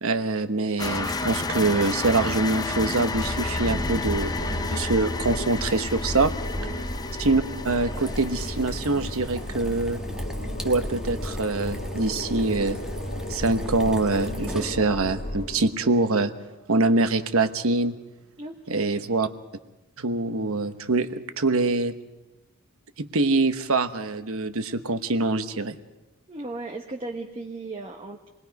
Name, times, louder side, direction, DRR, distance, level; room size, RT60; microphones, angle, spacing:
voice 1, 0.0-6.3 7.2-10.0 10.6-12.8 13.3-16.3 16.7-18.0 18.7-19.3 20.0-22.0 23.0-25.8, right 3 dB, 65° right, 9 dB, 1.1 m, -24 dB
sound 1, 0.8-9.2, left 3 dB, 20° left, 0.6 m, -32 dB
sound 2, 3.1-15.7, left 1 dB, 40° left, 2.0 m, -33 dB
voice 2, 6.5-6.9 18.4-19.1 26.3-28.3, right 2 dB, 25° right, 0 dB, 1.2 m, -37 dB
sound 3, 7.5-15.1, equal, 5° right, 1.3 m, -40 dB
27.0 x 20.5 x 5.3 m, 1.0 s
head